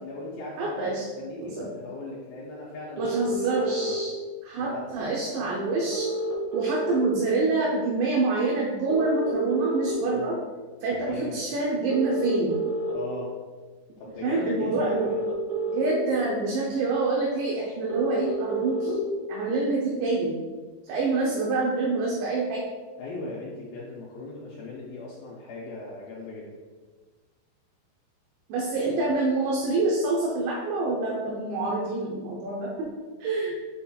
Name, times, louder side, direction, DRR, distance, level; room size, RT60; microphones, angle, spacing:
voice 1, 0.0-0.9 1.2-3.9 4.6-4.8 10.1-10.3 11.1-11.4 12.9-13.3 14.0-15.2 23.0-26.5, left 2 dB, 75° left, -6 dB, 2.2 m, -38 dB
voice 2, 0.6-1.0 1.4-1.7 3.0-4.1 4.4-6.1 6.5-10.4 10.8-12.6 14.2-15.1 15.7-20.4 20.8-22.7 28.5-32.9 33.2-33.6, right 3 dB, 80° right, -3 dB, 2.9 m, -26 dB
sound 1, 3.0-3.9 5.9-6.9 8.9-9.9 11.9-12.9 14.9-15.9 17.9-18.9, right 2 dB, 60° right, 3.1 m, -29 dB
7.3 x 5.6 x 2.3 m, 1.4 s
omnidirectional pair, 5.3 m